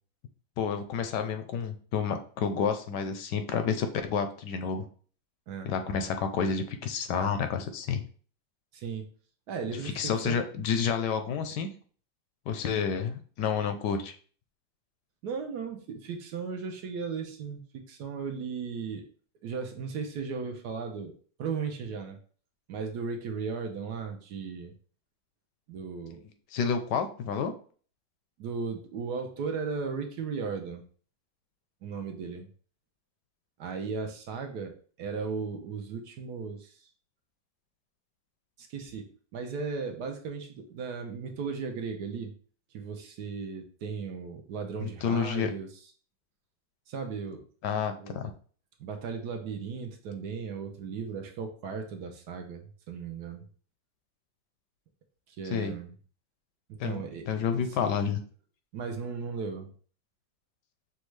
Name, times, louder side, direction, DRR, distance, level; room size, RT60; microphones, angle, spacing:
voice 1, 0.6-4.9 5.6-8.0 10.0-11.7 12.5-14.1 26.5-27.5 44.8-45.5 47.6-48.3 55.5-55.7 56.8-58.2, left 6 dB, 75° left, 8 dB, 1.1 m, -30 dB
voice 2, 8.7-9.1 9.5-10.4 15.2-19.1 19.4-21.1 21.4-22.2 22.7-24.7 25.7-26.2 28.4-30.8 31.8-32.5 33.6-36.9 38.6-39.1 39.3-42.3 42.7-45.7 46.9-47.4 48.0-48.3 48.8-52.6 52.9-53.5 55.3-55.9 56.7-57.3 57.6-57.7 58.7-59.7, right 5 dB, 70° right, 5 dB, 1.1 m, -36 dB
6.2 x 2.3 x 3.1 m, 0.43 s
omnidirectional pair, 2.0 m